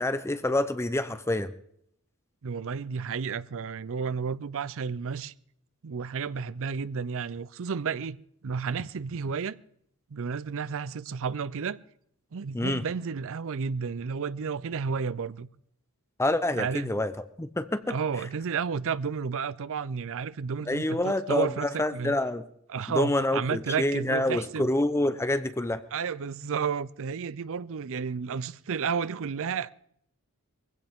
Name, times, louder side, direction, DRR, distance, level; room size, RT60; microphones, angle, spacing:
voice 1, 0.0-1.5 12.5-12.8 16.2-17.1 17.4-18.0 20.7-22.5 22.9-25.8, left 1 dB, 10° left, 0.6 m, -27 dB
voice 2, 2.4-5.3 5.8-8.2 8.4-9.6 10.1-11.8 12.3-15.5 16.6-16.9 17.9-22.2 22.7-24.7 25.9-29.7, right 6 dB, 65° right, 0.5 m, -32 dB
22.0 x 16.0 x 3.7 m
head